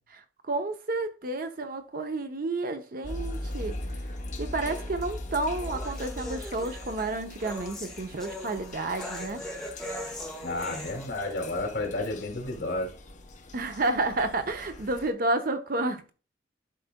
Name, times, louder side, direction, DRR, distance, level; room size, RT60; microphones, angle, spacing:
voice 1, 0.4-3.8 4.4-9.4 13.5-16.1, right 2 dB, 50° right, 0.7 m, -30 dB
sound 1, 3.0-15.1, left 1 dB, 40° left, 0.8 m, -40 dB
sound 2, 4.7-11.1, left 1 dB, 5° left, 1.0 m, -40 dB
voice 2, 10.4-12.9, left 2 dB, 55° left, 2.4 m, -31 dB
11.5 x 3.9 x 2.2 m
head